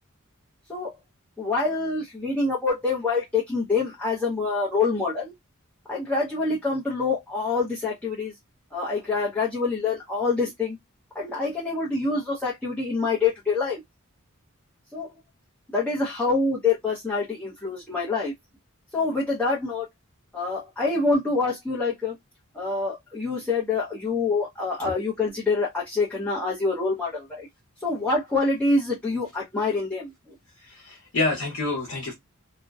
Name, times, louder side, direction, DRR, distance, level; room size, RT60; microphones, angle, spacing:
voice 1, 1.4-5.3 5.9-8.4 8.7-10.8 11.1-13.8 14.9-15.1 15.7-18.3 18.9-19.9 20.3-22.2 22.5-27.5 27.8-30.4, left 3 dB, 5° left, 0.7 m, -26 dB
voice 2, 30.6-32.1, left 2 dB, 85° left, 0.7 m, -28 dB
2.6 x 2.1 x 2.3 m
head